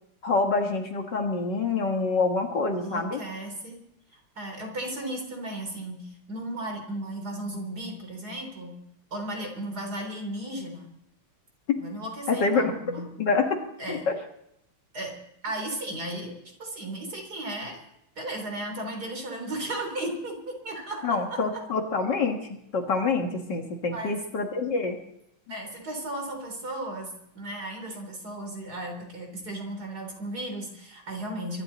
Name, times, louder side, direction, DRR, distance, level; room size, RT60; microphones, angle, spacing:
voice 1, 0.2-3.2 11.7-11.8 12.3-12.7 13.2-13.6 13.9-14.1 21.0-22.5 22.7-25.0, left 4 dB, 55° left, 4 dB, 2.2 m, -26 dB
voice 2, 2.8-3.8 4.1-8.8 9.1-10.9 11.8-13.1 13.8-14.1 14.9-15.1 15.4-16.3 16.6-17.8 18.2-21.5 23.9-24.2 25.5-31.6, right 1 dB, 45° right, 3 dB, 4.3 m, -35 dB
24.0 x 12.5 x 4.1 m, 0.78 s
omnidirectional pair, 2.3 m